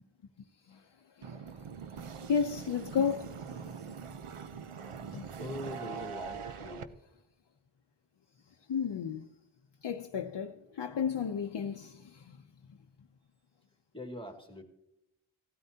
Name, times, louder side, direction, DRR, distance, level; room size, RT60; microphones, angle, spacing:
voice 1, 1.2-1.5 2.3-3.8 5.1-5.3 8.7-9.3 9.8-12.4, left 7 dB, 55° left, 0.7 m, -33 dB
sound 1, 1.2-6.8, right 6 dB, 85° right, 0.8 m, -43 dB
voice 2, 5.4-6.9 13.9-14.6, left 1 dB, 10° left, 1.6 m, -42 dB
17.0 x 12.5 x 2.8 m
wide cardioid pair, 65°, 50 cm